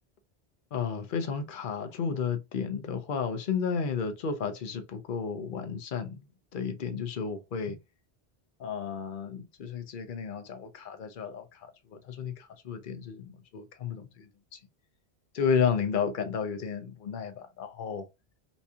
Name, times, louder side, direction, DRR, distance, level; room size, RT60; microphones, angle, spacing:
voice 1, 0.7-6.2 6.5-7.8 8.6-14.6 15.3-18.1, left 6 dB, 55° left, 0.8 m, -32 dB
4.2 x 2.4 x 2.7 m
omnidirectional pair, 1.1 m